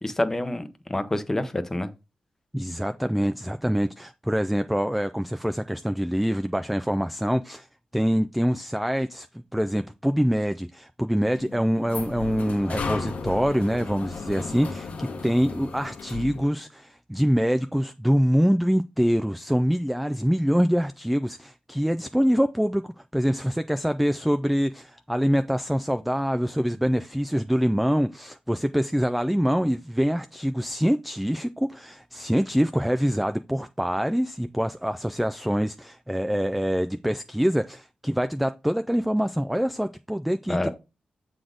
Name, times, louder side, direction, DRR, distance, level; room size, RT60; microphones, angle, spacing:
voice 1, 0.0-1.9 40.5-40.7, left 1 dB, 15° left, 0.8 m, -27 dB
voice 2, 2.5-7.7 7.9-40.7, equal, ahead, 0.3 m, -25 dB
sound 1, 11.2-16.5, left 4 dB, 65° left, 1.4 m, -35 dB
7.6 x 4.0 x 5.0 m
wide cardioid pair, 140°, 3 cm